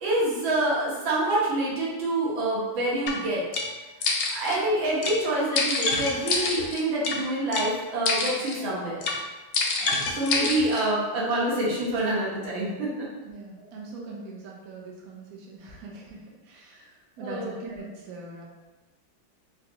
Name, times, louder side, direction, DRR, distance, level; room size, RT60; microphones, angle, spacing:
voice 1, 0.0-3.4 4.3-9.1 9.8-13.1 17.2-17.5, right 1 dB, 85° right, -5 dB, 1.7 m, -26 dB
sound 1, 3.1-3.2 3.5-3.7 4.0-4.6 5.0-5.2 5.6-7.2 7.5-7.7 8.1-8.6 9.0-9.2 9.5-10.8, left 4 dB, 75° left, 1.0 m, -27 dB
voice 2, 13.2-18.5, right 3 dB, 70° right, -2 dB, 0.9 m, -42 dB
3.8 x 2.3 x 2.7 m, 1.2 s
omnidirectional pair, 2.1 m